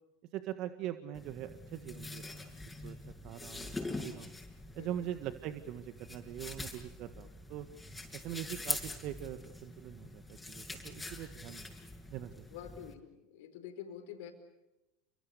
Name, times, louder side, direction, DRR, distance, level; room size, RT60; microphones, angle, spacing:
voice 1, 0.3-2.5 2.8-3.0 3.2-3.7 4.0-4.3 4.7-7.7 8.1-11.6 12.1-12.5, right 12 dB, 55° right, 9 dB, 1.7 m, -42 dB
sound 1, 1.2-12.9, left 2 dB, 10° left, 6.7 m, -44 dB
voice 2, 4.6-5.1 12.5-14.3, left 9 dB, 75° left, 6 dB, 4.6 m, -47 dB
29.5 x 25.5 x 7.0 m, 0.98 s
hypercardioid pair, 90°, 0 cm